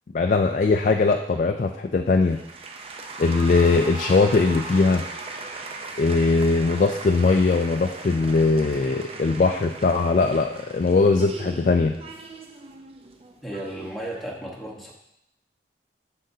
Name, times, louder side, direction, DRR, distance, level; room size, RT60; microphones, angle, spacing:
voice 1, 0.1-2.4 3.2-5.0 6.0-11.9, left 3 dB, 45° left, 4 dB, 0.3 m, -20 dB
sound 1, 2.3-14.2, right 3 dB, 35° right, 0.6 m, -38 dB
voice 2, 13.4-14.9, right 1 dB, ahead, -4 dB, 1.2 m, -34 dB
7.6 x 6.5 x 2.7 m, 0.82 s
head